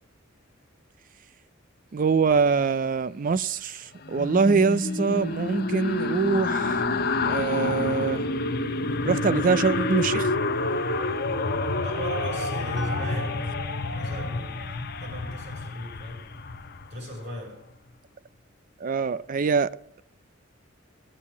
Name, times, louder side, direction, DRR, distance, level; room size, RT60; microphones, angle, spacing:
voice 1, 1.9-6.8 7.3-8.2 9.1-10.3 18.8-20.0, right 5 dB, 40° right, 0.4 m, -24 dB
sound 1, 4.0-15.8, left 1 dB, 75° left, 1.5 m, -30 dB
sound 2, 4.0-17.4 17.7-17.9, left 4 dB, 50° left, 0.7 m, -32 dB
voice 2, 11.8-13.6 13.9-16.3 16.9-17.6, equal, 60° right, 5.8 m, -38 dB
sound 3, 12.8-16.8, left 2 dB, ahead, 1.5 m, -47 dB
15.0 x 8.8 x 7.2 m
head